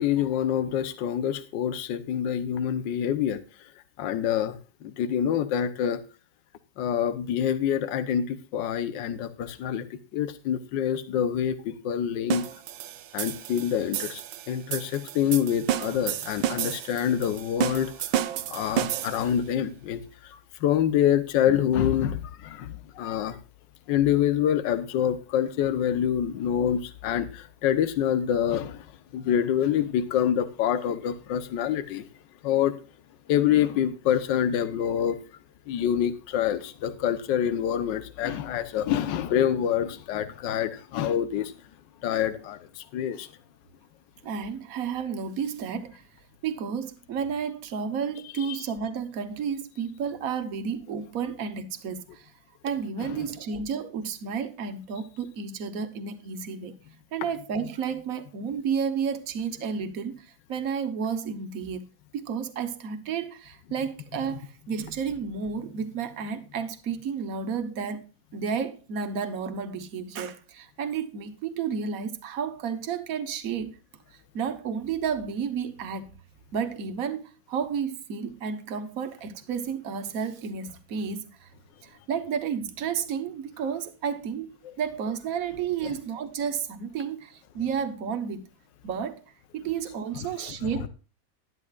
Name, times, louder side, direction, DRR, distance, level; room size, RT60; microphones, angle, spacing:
voice 1, 0.0-3.4 4.0-4.6 4.8-6.0 6.8-9.8 10.1-12.5 13.1-14.2 14.5-17.9 18.5-20.0 20.3-23.4 23.9-28.8 29.1-32.1 32.4-32.7 33.3-35.2 35.7-41.5 42.0-43.3 48.5-48.6 84.6-84.7 85.8-85.9 90.5-90.6, left 9 dB, 75° left, 1.5 m, -26 dB
sound 1, 12.3-19.4, right 11 dB, 85° right, 1.4 m, -31 dB
voice 2, 44.2-46.1 46.4-52.3 52.6-56.7 57.1-61.8 62.1-68.0 68.3-73.8 74.3-76.1 76.5-81.5 81.8-88.4 88.8-89.2 89.5-90.9, right 6 dB, 50° right, 1.4 m, -31 dB
12.0 x 12.0 x 2.4 m
omnidirectional pair, 2.1 m